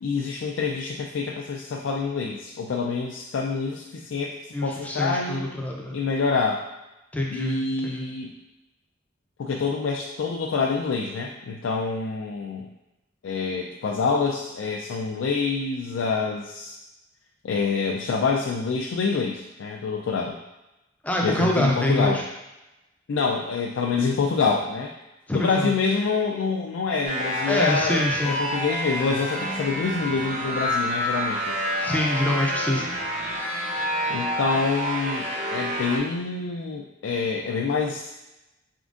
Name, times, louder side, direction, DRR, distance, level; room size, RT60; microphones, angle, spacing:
voice 1, 0.0-4.3 4.6-5.5 5.9-6.6 7.3-8.3 9.4-12.7 13.2-16.7 17.4-20.4 21.2-22.2 23.1-24.9 25.3-31.6 34.1-38.1, left 4 dB, 80° left, -1 dB, 0.4 m, -26 dB
voice 2, 4.5-5.9 7.1-8.1 21.0-22.2 25.3-25.7 27.5-28.4 31.8-32.8, left 1 dB, 10° left, -1 dB, 0.4 m, -25 dB
sound 1, 27.0-36.0, equal, 40° right, 0.6 m, -28 dB
4.2 x 3.7 x 2.4 m, 0.97 s
head